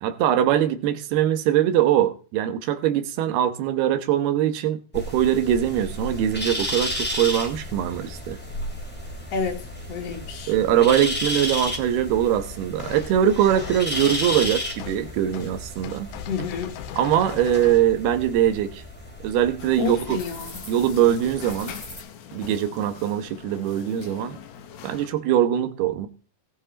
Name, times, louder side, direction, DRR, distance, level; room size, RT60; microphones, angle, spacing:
voice 1, 0.0-8.4 10.5-16.1 17.0-18.8 19.2-20.2 20.7-21.8 22.3-24.4 24.8-26.1, right 10 dB, 75° right, 3.1 m, -22 dB
sound 1, 4.9-22.0, left 1 dB, 5° left, 2.0 m, -33 dB
voice 2, 9.3-10.5 16.3-16.8 19.8-20.5, left 6 dB, 50° left, 2.2 m, -30 dB
sound 2, 12.8-13.2 13.5-15.1 15.3-15.5 15.8-17.9, left 11 dB, 85° left, 2.9 m, -38 dB
sound 3, 19.6-25.1, left 8 dB, 70° left, 1.8 m, -42 dB
19.0 x 7.7 x 4.2 m
omnidirectional pair, 4.8 m